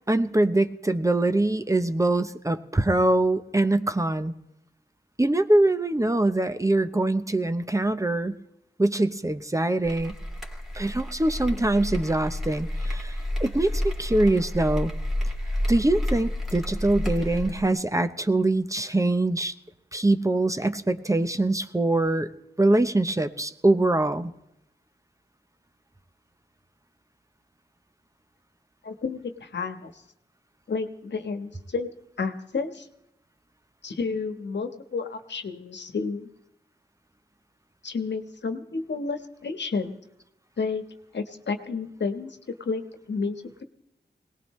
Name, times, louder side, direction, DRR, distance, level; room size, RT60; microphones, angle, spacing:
voice 1, 0.1-4.3 5.2-8.4 8.8-10.1 10.7-13.1 13.4-14.9 15.7-19.5 19.9-22.3 22.6-24.3, right 2 dB, 20° right, 9 dB, 0.8 m, -23 dB
sound 1, 9.8-17.7, left 1 dB, ahead, 2.7 m, -30 dB
voice 2, 28.8-29.9 30.7-31.9 32.2-32.9 33.8-36.3 37.8-39.9 40.6-40.8 41.1-43.6, left 4 dB, 85° left, 7 dB, 1.3 m, -31 dB
21.5 x 18.5 x 3.2 m, 0.85 s
wide cardioid pair, 80°, 18 cm